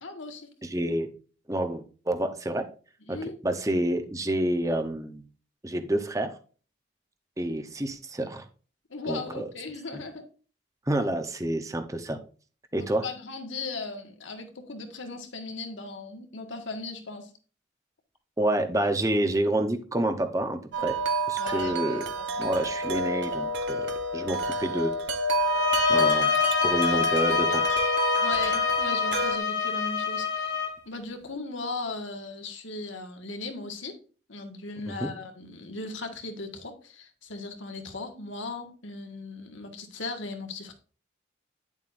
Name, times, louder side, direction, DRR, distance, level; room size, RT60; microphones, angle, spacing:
voice 1, 0.0-0.5 3.1-3.3 8.9-10.2 12.7-17.3 21.4-22.5 28.2-30.5 30.8-33.9 34.3-40.7, left 3 dB, 85° left, 5 dB, 1.7 m, -37 dB
voice 2, 0.6-1.1 1.5-2.6 3.1-3.2 3.4-5.2 5.6-6.4 7.4-8.4 9.0-9.5 10.9-12.2 12.7-13.0 18.4-21.0 21.3-22.0 22.4-25.0 25.9-26.3 26.6-27.6 35.0-35.1, right 1 dB, 15° right, 7 dB, 0.8 m, -28 dB
Wind chime, 20.7-29.4, right 1 dB, 70° right, 1.1 m, -28 dB
sound 1, 25.4-30.8, left 6 dB, 65° left, 1.6 m, -26 dB
10.5 x 7.3 x 2.6 m, 0.38 s
head